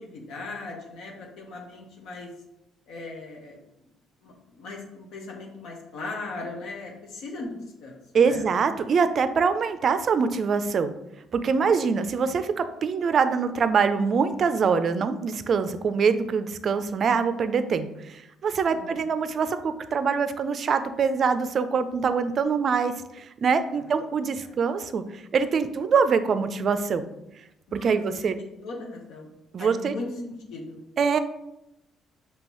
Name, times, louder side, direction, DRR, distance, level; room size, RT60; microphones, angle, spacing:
voice 1, 0.0-2.3 2.9-3.6 4.2-8.5 11.6-11.7 18.7-19.0 23.7-24.0 24.4-24.5 27.7-28.0 28.6-29.3 29.6-30.8, left 3 dB, 75° left, 0 dB, 0.8 m, -38 dB
voice 2, 8.1-10.9 11.3-27.1 27.7-28.4 29.5-30.0 31.0-31.2, right 5 dB, 50° right, 11 dB, 0.4 m, -24 dB
5.3 x 2.8 x 3.0 m, 0.87 s
cardioid pair, 85°, 0 cm